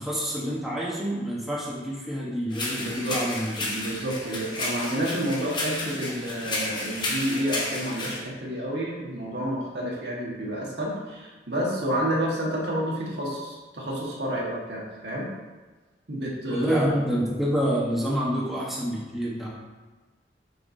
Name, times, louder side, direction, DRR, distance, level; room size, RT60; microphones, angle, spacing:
voice 1, 0.0-3.7 16.5-19.5, equal, ahead, -6 dB, 1.1 m, -27 dB
sound 1, 2.5-8.2, left 2 dB, 25° left, 1.0 m, -32 dB
voice 2, 2.8-3.2 3.7-15.3 16.1-17.0, equal, 70° right, -4 dB, 1.5 m, -30 dB
6.6 x 5.8 x 2.7 m, 1.3 s
head